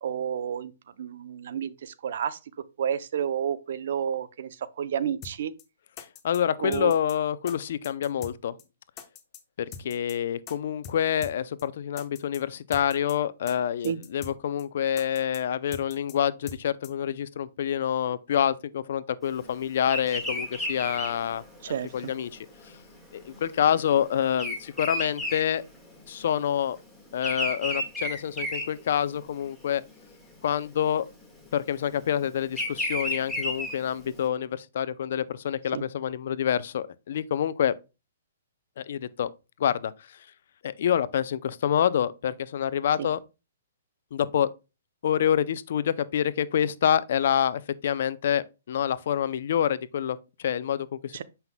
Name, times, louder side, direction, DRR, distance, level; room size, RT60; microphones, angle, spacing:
voice 1, 0.0-0.7 1.0-2.4 2.8-4.5 4.8-5.5 6.6-6.9 13.8-14.0 21.6-21.9 35.7-35.8 43.0-43.1 51.1-51.2, right 8 dB, 60° right, 0.6 m, -30 dB
sound 1, 5.2-5.3 5.6-5.7 6.0-6.4 6.7-7.1 7.5-7.6 7.8-8.3 8.6-8.7 9.0-9.4 9.7-10.1 10.5-10.6 10.8-11.0 11.2-11.3 11.6-11.7 12.0-12.4 12.7-13.1 13.5-13.6 13.8-14.3 14.6-14.7 15.0-15.4 15.7-16.1 16.5-16.6 16.8-16.9, left 6 dB, 25° left, 0.9 m, -42 dB
voice 2, 6.0-8.6 9.8-21.4 21.9-22.4 23.1-25.6 26.1-26.8 27.1-29.8 30.4-31.1 31.5-37.7 38.8-39.3 39.6-40.2 40.6-43.2 44.1-44.5 45.0-51.2, left 9 dB, 60° left, 0.5 m, -27 dB
Bird vocalization bird call bird song, 19.8-26.3 26.5-29.4 29.9-30.2 31.2-34.2, left 1 dB, ahead, 1.7 m, -33 dB
7.8 x 5.5 x 2.2 m
hypercardioid pair, 145°, 0 cm